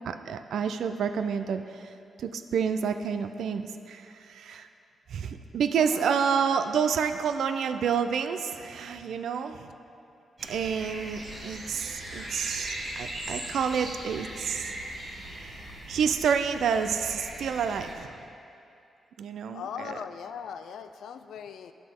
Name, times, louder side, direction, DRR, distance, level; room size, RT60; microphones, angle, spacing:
voice 1, 0.0-1.8 2.2-3.6 3.9-4.7 5.1-9.7 10.5-14.7 15.3-18.2 19.2-20.0, right 7 dB, 70° right, 9 dB, 0.4 m, -29 dB
voice 2, 5.8-6.5 19.5-21.7, left 7 dB, 90° left, 10 dB, 0.4 m, -40 dB
sound 1, 10.4-17.9, right 1 dB, 30° right, 1.1 m, -39 dB
11.5 x 6.0 x 3.6 m, 2.6 s
wide cardioid pair, 175°, 0 cm